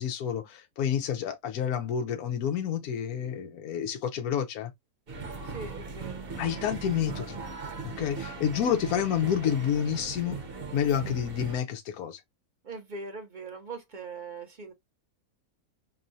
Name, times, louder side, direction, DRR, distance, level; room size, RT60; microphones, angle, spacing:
voice 1, 0.0-4.7 6.4-7.4 7.8-10.4 10.7-12.2, left 9 dB, 80° left, 1.1 m, -29 dB
sound 1, 5.1-11.6, right 4 dB, 45° right, 1.0 m, -39 dB
voice 2, 5.4-6.3 12.6-14.7, right 4 dB, 65° right, 0.4 m, -41 dB
4.2 x 3.0 x 2.5 m
omnidirectional pair, 1.6 m